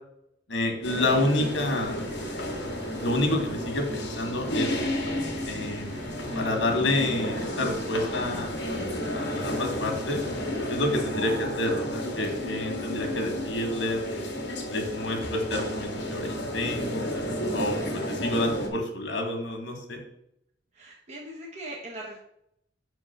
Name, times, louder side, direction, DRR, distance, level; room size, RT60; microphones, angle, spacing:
voice 1, 0.5-2.1 3.0-4.8 5.5-5.9 6.3-10.2 10.7-14.3 14.7-17.1 17.5-20.0, left 1 dB, 80° left, 3 dB, 1.8 m, -29 dB
sound 1, 0.8-18.7, left 1 dB, 65° left, 1.7 m, -32 dB
sound 2, 1.3-11.9, equal, 10° right, 1.8 m, -44 dB
voice 2, 20.7-22.2, right 1 dB, 40° right, -3 dB, 1.1 m, -40 dB
6.1 x 4.6 x 5.9 m, 0.74 s
head